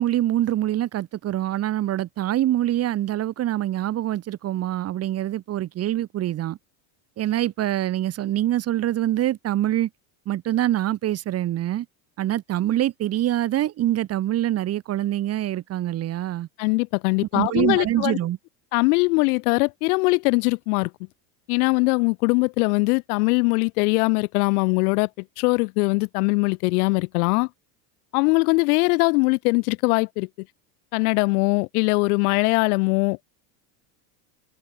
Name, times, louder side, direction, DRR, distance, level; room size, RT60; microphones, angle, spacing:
voice 1, 0.0-6.6 7.2-9.9 10.3-11.9 12.2-16.5 17.3-18.4, right 13 dB, 35° right, 1.2 m, -25 dB
voice 2, 16.6-18.2 18.7-20.9 21.5-25.1 25.4-27.5 28.1-30.3 30.9-33.3, left 28 dB, 80° left, 1.7 m, -21 dB
cardioid pair, 145°, 44 cm